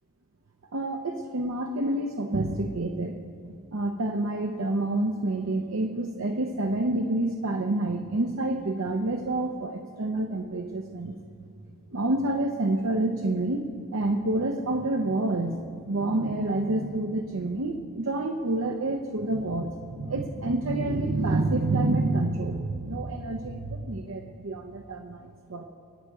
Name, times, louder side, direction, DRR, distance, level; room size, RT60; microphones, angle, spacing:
voice 1, 0.7-3.2 3.5-11.2 11.9-13.7 13.9-25.6, right 2 dB, 80° right, 2 dB, 0.7 m, -28 dB
22.5 x 8.9 x 4.7 m, 2.5 s
head